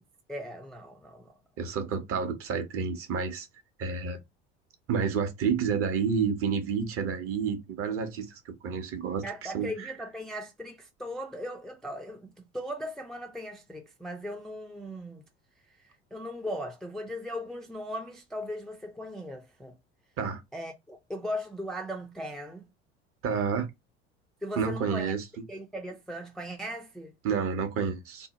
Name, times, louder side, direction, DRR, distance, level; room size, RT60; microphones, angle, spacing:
voice 1, 0.3-1.3 9.2-15.2 15.8-19.7 20.5-22.7 24.4-25.1 25.5-27.1, equal, ahead, 0.4 m, -38 dB
voice 2, 1.6-3.5 3.8-4.2 4.9-9.7 20.2-20.4 23.2-23.7 24.6-25.2 27.2-28.3, right 6 dB, 40° right, 0.7 m, -29 dB
2.7 x 2.0 x 2.8 m
hypercardioid pair, 65°, 33 cm